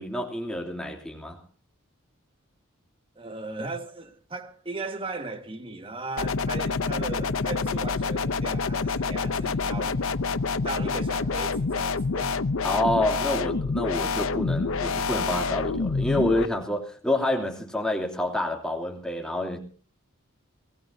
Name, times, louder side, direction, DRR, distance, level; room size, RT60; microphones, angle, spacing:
voice 1, 0.0-1.4 12.6-19.6, left 1 dB, 5° left, 2.9 m, -28 dB
voice 2, 3.1-10.1 10.6-12.4, right 3 dB, 25° right, 1.7 m, -37 dB
sound 1, 6.2-16.5, left 4 dB, 75° left, 0.7 m, -27 dB
23.5 x 20.0 x 2.8 m
head